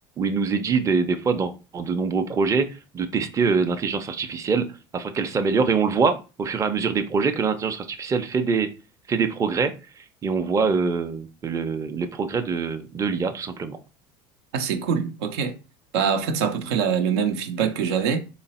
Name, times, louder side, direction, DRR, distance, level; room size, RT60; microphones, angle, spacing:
voice 1, 0.2-4.7 4.9-8.7 9.1-13.8, right 5 dB, 25° right, 0.5 m, -24 dB
voice 2, 14.5-15.6 15.9-18.2, right 7 dB, 85° right, 0.7 m, -24 dB
3.9 x 2.0 x 4.1 m
supercardioid pair, 105°, 14 cm